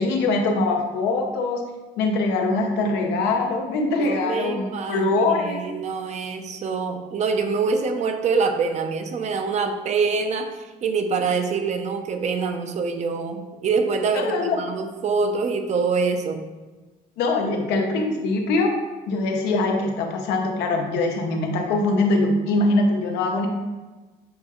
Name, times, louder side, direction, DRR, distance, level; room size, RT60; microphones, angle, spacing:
voice 1, 0.0-1.6 2.0-5.6 14.1-14.6 17.2-18.7 19.1-23.5, left 2 dB, 90° left, 2 dB, 0.7 m, -22 dB
voice 2, 2.6-3.3 4.0-5.0 5.4-16.4, right 5 dB, 45° right, 6 dB, 0.5 m, -25 dB
6.4 x 2.3 x 2.9 m, 1.2 s
cardioid pair, 110°, 17 cm